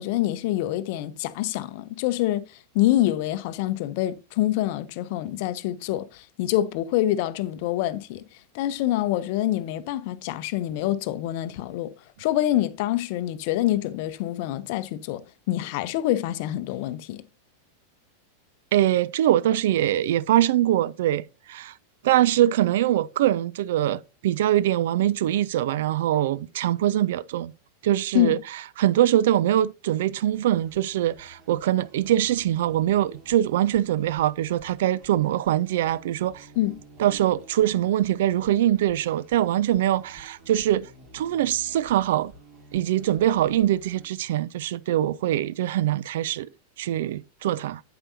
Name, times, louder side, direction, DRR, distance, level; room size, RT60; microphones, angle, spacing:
voice 1, 0.0-11.9 12.2-17.2 28.1-28.4 36.6-36.7, left 14 dB, 50° left, 0.6 m, -26 dB
voice 2, 18.7-21.7 22.0-27.5 27.8-28.4 28.8-36.5 37.0-42.3 42.7-46.5 46.8-47.8, right 12 dB, 55° right, 0.3 m, -23 dB
sound 1, 30.3-44.0, equal, 40° right, 2.7 m, -51 dB
8.7 x 7.9 x 2.7 m
figure-of-eight pair, 90°, 0 cm